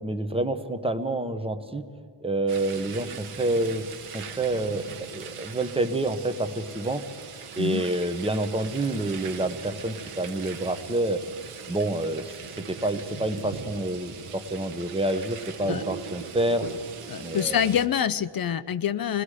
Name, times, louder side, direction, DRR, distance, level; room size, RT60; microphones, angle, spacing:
voice 1, 0.0-1.8 2.2-3.8 4.1-7.0 7.6-11.2 11.7-12.3 12.7-16.6 17.2-17.6, right 2 dB, 10° right, 8 dB, 1.0 m, -28 dB
sound 1, 2.5-17.9, right 7 dB, 90° right, 1.3 m, -40 dB
voice 2, 17.1-19.2, left 9 dB, 45° left, 15 dB, 0.5 m, -26 dB
29.0 x 20.0 x 4.9 m, 2.2 s
wide cardioid pair, 155°, 50 cm